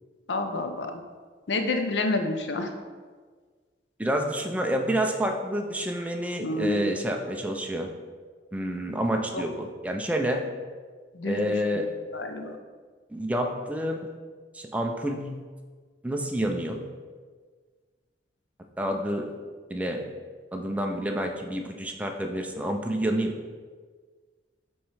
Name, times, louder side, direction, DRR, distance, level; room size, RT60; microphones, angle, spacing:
voice 1, 0.3-0.9 1.5-2.7 6.4-6.9 9.3-9.4 11.1-11.5 12.1-12.6, left 2 dB, 90° left, 6 dB, 0.6 m, -28 dB
voice 2, 4.0-7.9 8.5-10.5 11.2-11.9 13.1-14.1 14.5-15.4 16.0-16.8 18.8-19.3 19.7-20.0 20.5-23.3, equal, 10° right, 3 dB, 0.4 m, -28 dB
7.1 x 3.1 x 4.7 m, 1.5 s
head